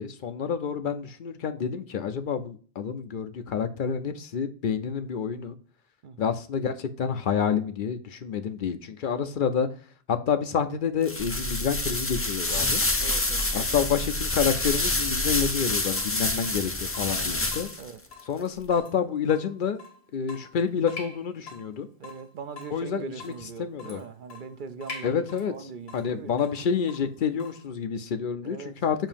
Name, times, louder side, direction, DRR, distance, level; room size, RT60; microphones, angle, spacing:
voice 1, 0.0-5.5 6.2-9.7 10.1-12.8 13.5-17.7 18.3-19.8 20.1-21.9 22.7-23.3 23.6-24.0 25.0-25.5 25.9-29.1, left 7 dB, 60° left, 0.7 m, -28 dB
sound 1, 11.0-17.9, left 2 dB, 20° left, 0.5 m, -28 dB
sound 2, 11.2-15.5, equal, 45° right, 1.6 m, -36 dB
voice 2, 13.0-13.5 17.2-17.5 17.8-18.0 22.0-26.3 28.4-28.8, right 5 dB, 60° right, 0.7 m, -41 dB
Water tap faucet / Drip, 15.7-27.7, left 3 dB, 80° left, 1.8 m, -46 dB
7.3 x 2.7 x 5.1 m
omnidirectional pair, 1.0 m